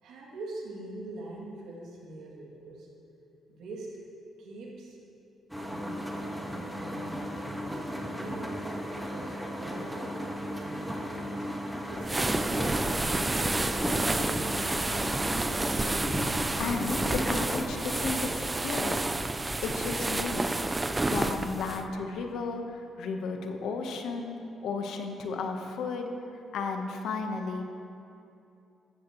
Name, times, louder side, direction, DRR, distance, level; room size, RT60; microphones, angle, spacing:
voice 1, 0.0-2.9 3.5-4.0 4.4-5.0 5.6-15.2, right 2 dB, 80° right, -4 dB, 2.7 m, -43 dB
sound 1, 5.5-19.7, equal, ahead, 1.6 m, -35 dB
sound 2, 12.0-21.8, right 2 dB, 20° right, 0.5 m, -30 dB
voice 2, 16.3-19.0 19.6-20.6 21.0-24.4 24.6-27.6, left 4 dB, 75° left, 4 dB, 1.2 m, -34 dB
14.0 x 14.0 x 3.2 m, 2.7 s
cardioid pair, 90°, 0 cm